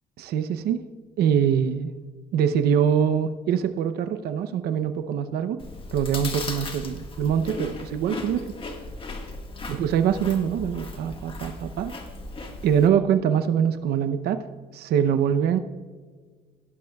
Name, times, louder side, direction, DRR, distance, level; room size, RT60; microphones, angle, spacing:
voice 1, 0.2-0.8 1.2-1.9 2.3-5.6 5.9-8.5 9.7-11.9 12.6-14.4 14.7-15.6, right 8 dB, 70° right, 9 dB, 0.7 m, -23 dB
Chewing mastication, 5.6-12.9, left 2 dB, 30° left, 1.6 m, -37 dB
17.5 x 11.5 x 2.3 m, 1.5 s
cardioid pair, 110°, 17 cm